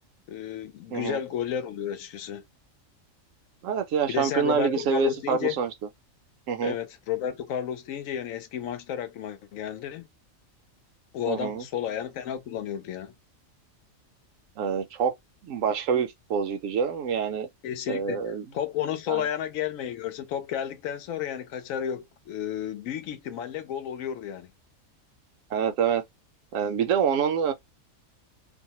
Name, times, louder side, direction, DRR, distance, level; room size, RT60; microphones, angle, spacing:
voice 1, 0.3-2.4 4.1-5.5 6.6-10.1 11.1-13.1 17.6-24.5, left 9 dB, 75° left, 1.0 m, -32 dB
voice 2, 3.6-5.7 6.5-6.7 11.3-11.6 14.6-15.1 15.4-17.5 17.9-18.5 19.1-19.3 25.5-26.0 26.5-27.5, right 7 dB, 75° right, 0.9 m, -26 dB
2.6 x 2.1 x 2.8 m
omnidirectional pair, 1.4 m